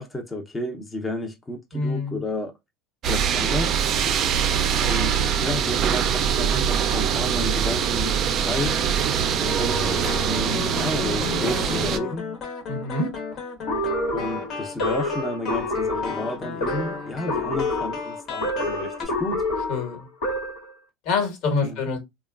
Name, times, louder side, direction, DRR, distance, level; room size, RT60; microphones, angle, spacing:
voice 1, 0.0-2.5 3.1-3.8 4.8-8.8 9.6-12.3 14.1-19.4 21.6-21.8, left 1 dB, 15° left, 0.6 m, -31 dB
voice 2, 1.7-2.2 11.2-11.5 12.7-13.1 19.7-20.1 21.0-22.0, left 4 dB, 65° left, 1.3 m, -26 dB
sound 1, 3.0-12.0, right 8 dB, 45° right, 0.4 m, -23 dB
sound 2, 9.4-19.1, left 5 dB, 45° left, 1.0 m, -34 dB
sound 3, 13.7-20.7, left 2 dB, 85° left, 1.2 m, -28 dB
3.0 x 2.2 x 2.3 m
supercardioid pair, 105°, 0 cm